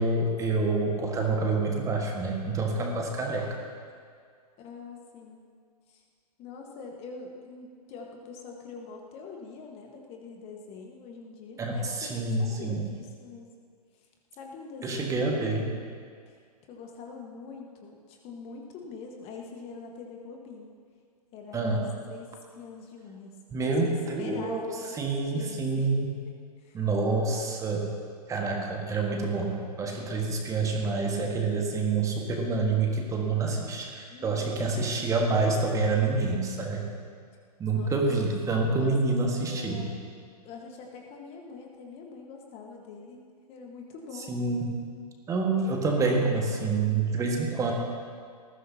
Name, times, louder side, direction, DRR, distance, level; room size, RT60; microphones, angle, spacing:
voice 1, 0.0-3.5 11.6-12.8 14.8-15.7 21.5-21.8 23.5-24.6 25.0-26.1 26.7-27.9 28.3-36.8 37.6-39.8 44.3-44.7 45.3-47.7, right 3 dB, 15° right, 1 dB, 1.7 m, -27 dB
voice 2, 2.7-3.1 4.6-5.4 5.9-6.0 6.4-13.4 14.0-14.1 14.4-15.9 16.3-16.4 16.7-20.7 21.3-24.9 25.2-25.9 26.6-26.8 34.1-34.8 37.7-38.3 38.8-38.9 39.4-39.9 40.4-43.2 43.5-44.3, left 5 dB, 30° left, 1 dB, 1.6 m, -44 dB
19.5 x 15.0 x 2.9 m, 2.1 s
figure-of-eight pair, 110°, 20 cm